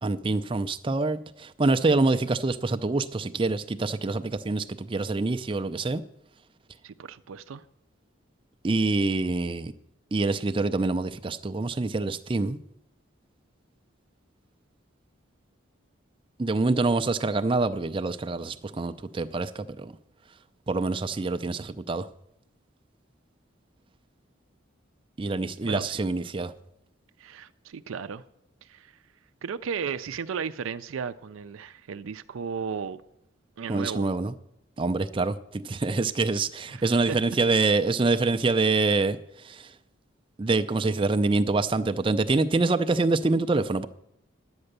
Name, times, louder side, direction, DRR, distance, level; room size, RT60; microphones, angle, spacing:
voice 1, 0.0-6.0 8.6-9.7 10.1-12.6 16.4-19.9 20.7-22.1 25.2-26.5 33.7-34.3 34.8-39.7 40.4-43.9, right 3 dB, 25° right, 0.4 m, -26 dB
voice 2, 6.8-7.6 25.6-25.9 27.2-28.2 28.6-29.0 29.4-33.0 33.6-34.1 36.7-37.2, right 6 dB, 85° right, 0.4 m, -35 dB
11.0 x 8.8 x 6.6 m
head